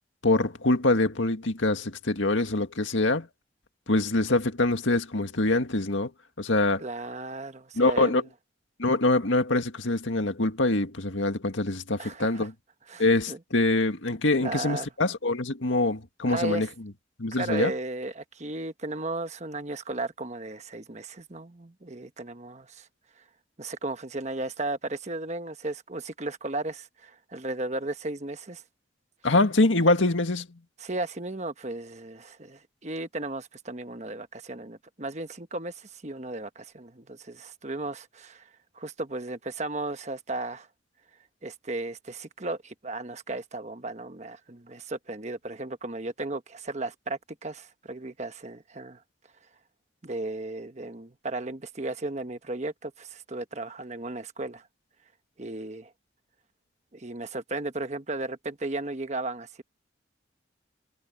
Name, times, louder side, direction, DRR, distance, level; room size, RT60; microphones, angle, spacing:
voice 1, 0.2-3.3 3.9-6.1 6.4-6.8 7.8-8.2 8.8-12.5 13.0-16.7 17.2-17.7 29.2-30.5, left 2 dB, 90° left, 2.0 m, -24 dB
voice 2, 6.8-8.2 12.0-12.5 12.9-13.4 14.4-14.9 16.2-16.7 17.3-22.9 23.6-28.6 30.8-38.5 38.7-40.7 41.4-49.0 50.0-54.7 55.4-55.9 56.9-59.6, right 2 dB, 35° right, 1.2 m, -35 dB
head